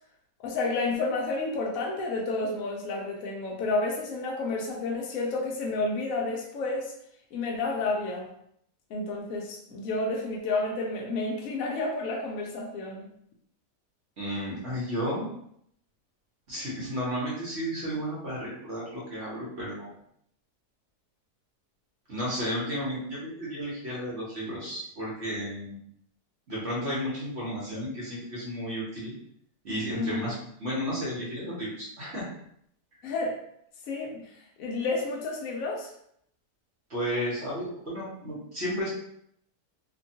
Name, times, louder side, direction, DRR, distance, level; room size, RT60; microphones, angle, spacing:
voice 1, 0.4-6.9 7.3-8.3 8.9-13.1 29.9-30.2 33.0-33.4 33.9-34.2 34.6-35.9, left 3 dB, 70° left, -1 dB, 0.9 m, -30 dB
voice 2, 14.2-15.3 16.5-19.9 22.1-25.8 26.5-29.1 29.6-30.3 30.6-32.3 32.9-33.0 36.9-38.9, equal, 50° right, -6 dB, 1.0 m, -33 dB
2.8 x 2.2 x 2.7 m, 0.70 s
omnidirectional pair, 1.7 m